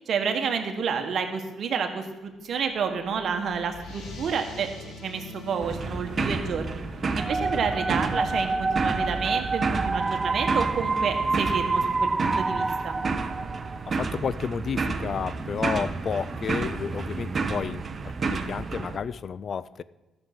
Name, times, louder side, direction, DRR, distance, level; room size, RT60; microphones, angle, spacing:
voice 1, 0.0-4.7 5.0-6.8 7.1-13.0, right 6 dB, 60° right, 5 dB, 1.5 m, -29 dB
sound 1, 2.6-13.4, left 1 dB, 85° left, 2.3 m, -43 dB
sound 2, 5.6-19.0, right 4 dB, 40° right, 0.9 m, -31 dB
sound 3, 7.2-14.0, right 3 dB, 25° right, 0.4 m, -28 dB
voice 2, 13.9-19.8, left 6 dB, 50° left, 18 dB, 0.4 m, -31 dB
13.5 x 7.0 x 6.1 m, 1.1 s
cardioid pair, 90°, 0 cm